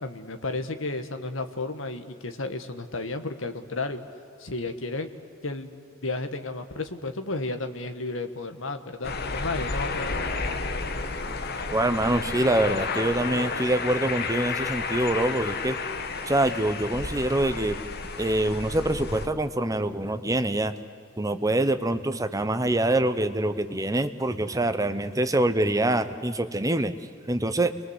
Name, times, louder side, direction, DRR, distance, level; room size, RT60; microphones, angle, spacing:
voice 1, 0.0-4.0 4.4-5.1 5.4-5.7 6.0-10.4, left 2 dB, 65° left, 7 dB, 1.5 m, -32 dB
sound 1, 9.0-19.3, left 4 dB, 50° left, 1.4 m, -31 dB
voice 2, 11.7-15.8 16.3-17.8 18.2-20.7 21.2-27.0 27.3-27.7, right 1 dB, 15° right, 9 dB, 1.1 m, -25 dB
29.5 x 22.5 x 8.2 m, 2.3 s
head